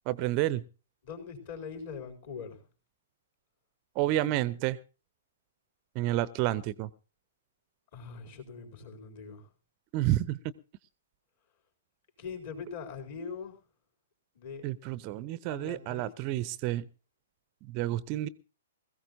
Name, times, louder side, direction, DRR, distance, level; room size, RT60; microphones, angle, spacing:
voice 1, 0.1-0.6 4.0-4.8 5.9-6.9 9.9-10.4 14.6-16.9 17.7-18.3, right 15 dB, 35° right, 0.6 m, -30 dB
voice 2, 1.0-2.6 7.9-9.4 12.2-13.5 14.4-14.6 15.5-16.5, left 5 dB, 50° left, 4.2 m, -42 dB
21.5 x 15.5 x 2.7 m
figure-of-eight pair, 115°, 0 cm